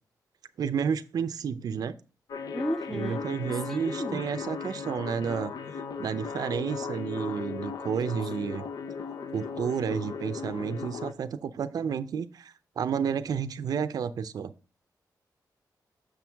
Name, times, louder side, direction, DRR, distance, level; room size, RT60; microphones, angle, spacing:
voice 1, 0.6-1.9 2.9-5.5 6.0-8.6 9.3-14.5, right 7 dB, 65° right, 0.5 m, -31 dB
sound 1, 2.3-11.1, left 5 dB, 65° left, 0.6 m, -37 dB
voice 2, 2.5-3.3 3.7-4.3, equal, 5° left, 0.4 m, -33 dB
6.6 x 6.2 x 3.4 m
wide cardioid pair, 150°, 7 cm